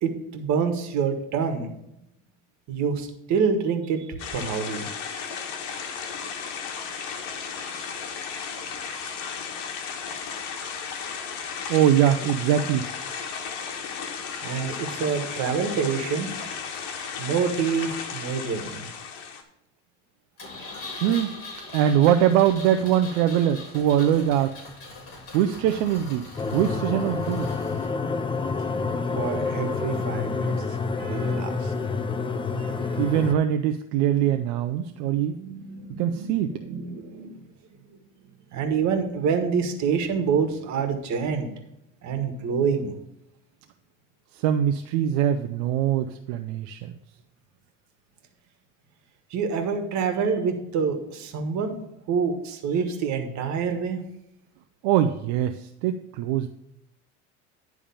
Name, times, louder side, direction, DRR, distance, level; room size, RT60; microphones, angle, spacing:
voice 1, 0.0-1.7 2.7-4.9 6.9-7.4 7.8-7.9 14.4-16.3 17.2-18.9 29.2-30.5 31.0-31.7 32.6-33.2 34.8-35.0 35.3-36.3 36.6-37.4 38.5-41.5 42.0-42.9 49.3-51.8 52.1-54.0, right 6 dB, 50° right, 5 dB, 1.6 m, -27 dB
sound 1, 4.2-19.4, left 6 dB, 75° left, 1.4 m, -34 dB
voice 2, 11.7-12.9 21.0-21.3 21.7-24.5 25.3-27.5 33.0-35.3 36.0-36.5 44.4-46.9 54.8-56.5, right 10 dB, 75° right, 6 dB, 0.7 m, -22 dB
Engine, 20.4-27.9, left 3 dB, 40° left, 3.4 m, -41 dB
sound 2, 26.4-33.3, left 4 dB, 15° left, 0.5 m, -28 dB
10.5 x 3.6 x 6.9 m, 0.82 s
supercardioid pair, 110°, 36 cm